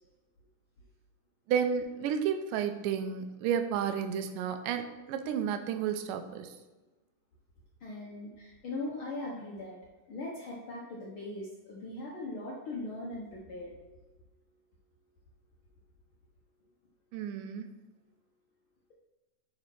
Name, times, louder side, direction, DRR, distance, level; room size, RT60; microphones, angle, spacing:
voice 1, 1.5-6.5 17.1-17.7, right 8 dB, 85° right, 8 dB, 2.3 m, -32 dB
voice 2, 7.8-9.8 10.1-13.9, left 2 dB, 65° left, -4 dB, 1.3 m, -40 dB
8.6 x 4.0 x 4.5 m, 1.1 s
omnidirectional pair, 3.7 m